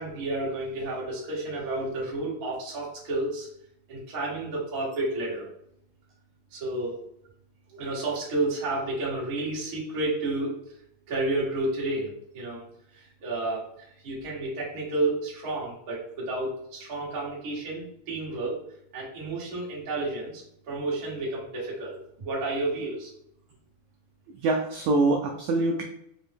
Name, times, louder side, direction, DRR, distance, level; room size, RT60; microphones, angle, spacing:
voice 1, 0.0-3.5 3.9-5.5 6.5-6.9 7.7-10.5 11.1-12.6 12.9-13.6 14.0-18.6 18.9-23.1, right 2 dB, 55° right, -6 dB, 1.0 m, -31 dB
voice 2, 24.4-25.8, right 2 dB, 85° right, 1 dB, 1.7 m, -24 dB
5.2 x 2.0 x 3.4 m, 0.75 s
omnidirectional pair, 3.8 m